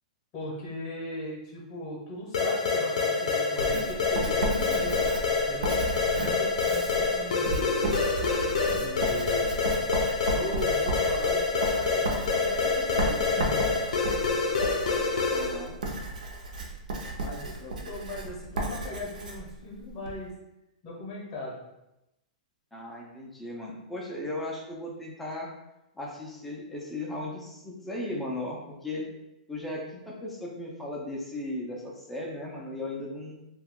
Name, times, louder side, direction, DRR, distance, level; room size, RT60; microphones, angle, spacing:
voice 1, 0.3-5.8 6.1-7.8 8.7-9.5 10.1-13.8 17.2-20.3 20.8-21.6, left 1 dB, 20° left, -5 dB, 0.7 m, -38 dB
sound 1, 2.3-15.7, left 4 dB, 60° left, 0.5 m, -27 dB
Writing, 3.6-20.2, right 2 dB, 85° right, 0.6 m, -34 dB
voice 2, 15.3-15.8 22.7-25.5 26.0-29.1 29.5-33.3, left 1 dB, 5° left, -3 dB, 0.3 m, -36 dB
2.8 x 2.3 x 3.4 m, 0.91 s
hypercardioid pair, 180°, 4 cm